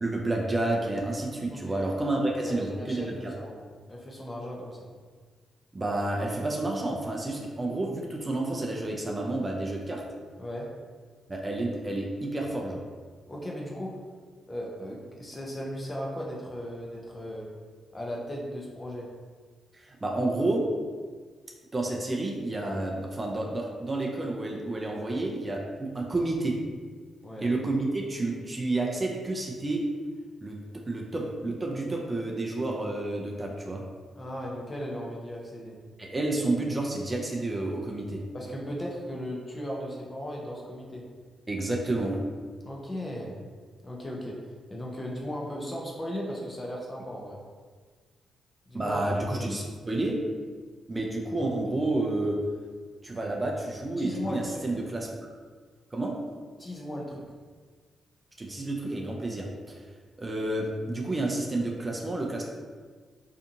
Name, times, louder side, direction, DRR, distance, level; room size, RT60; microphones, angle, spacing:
voice 1, 0.0-3.3 5.7-10.0 11.3-12.8 19.8-20.6 21.7-26.6 27.4-29.9 30.4-30.6 30.9-33.8 36.0-38.2 41.5-42.2 48.7-50.2 50.9-52.4 53.0-55.1 55.9-56.1 58.4-59.8 60.2-62.4, right 2 dB, 25° right, -1 dB, 0.4 m, -30 dB
voice 2, 2.3-4.9 10.4-10.7 13.3-13.9 14.5-17.5 17.9-19.1 27.2-27.5 34.2-35.8 38.3-41.0 42.6-43.3 43.8-44.4 44.7-47.4 48.7-49.0 49.3-49.5 54.0-54.6 56.6-57.2, equal, 25° left, -2 dB, 0.6 m, -37 dB
2.7 x 2.4 x 2.6 m, 1.5 s
cardioid pair, 70°, 0 cm